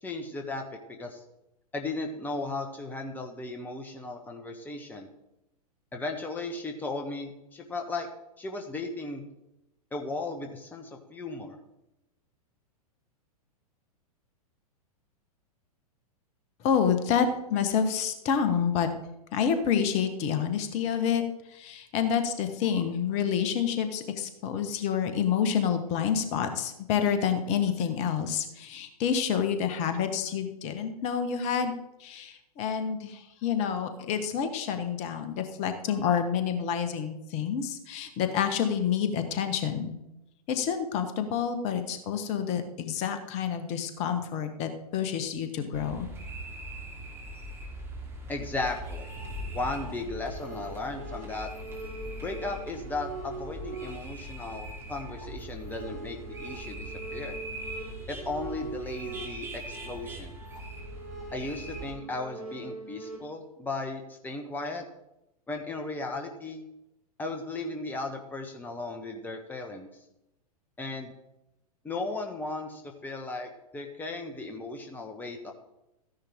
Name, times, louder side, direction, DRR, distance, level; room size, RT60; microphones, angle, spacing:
voice 1, 0.0-1.2 1.7-5.1 5.9-8.1 8.4-9.2 9.9-11.6 48.3-49.1 49.4-51.5 52.2-57.3 58.1-60.4 61.3-64.8 65.5-66.6 67.2-69.9 70.8-71.1 71.8-75.5, left 2 dB, 10° left, 3 dB, 1.2 m, -36 dB
voice 2, 16.6-18.9 19.3-21.2 21.5-31.7 32.0-39.9 40.5-46.1, left 7 dB, 35° left, 8 dB, 1.4 m, -28 dB
sound 1, 45.7-61.9, right 1 dB, 10° right, 2.8 m, -41 dB
sound 2, 48.8-63.2, right 3 dB, 65° right, 4.9 m, -43 dB
14.5 x 10.5 x 3.6 m, 0.88 s
figure-of-eight pair, 105°, 20 cm